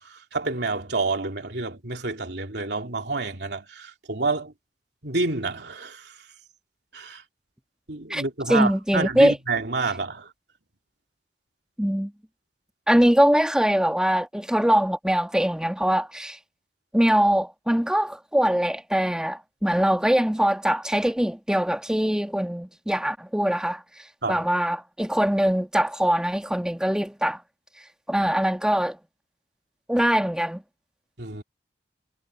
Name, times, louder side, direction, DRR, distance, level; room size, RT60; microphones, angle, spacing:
voice 1, 0.0-4.5 5.0-6.2 6.9-7.2 7.9-10.3 24.2-24.4 31.2-31.4, right 3 dB, 70° right, 3.2 m, -28 dB
voice 2, 8.5-9.4 11.8-12.1 12.9-16.4 16.9-23.8 24.3-27.4 28.1-29.0 29.9-30.6, equal, 5° right, 1.3 m, -22 dB
head